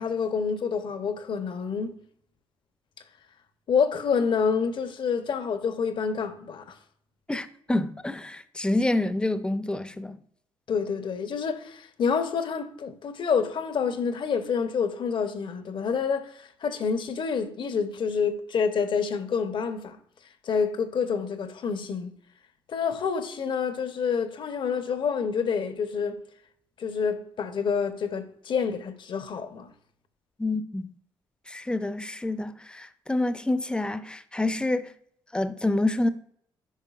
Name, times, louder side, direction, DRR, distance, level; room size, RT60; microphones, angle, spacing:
voice 1, 0.0-2.0 3.7-6.8 10.7-20.0 20.4-22.1 22.7-26.2 26.8-29.7, left 6 dB, 55° left, 0.8 m, -28 dB
voice 2, 7.3-10.2 30.4-30.9 31.5-34.9 35.3-36.1, left 2 dB, 10° left, 0.6 m, -27 dB
9.2 x 5.2 x 2.4 m
hypercardioid pair, 50°, 10 cm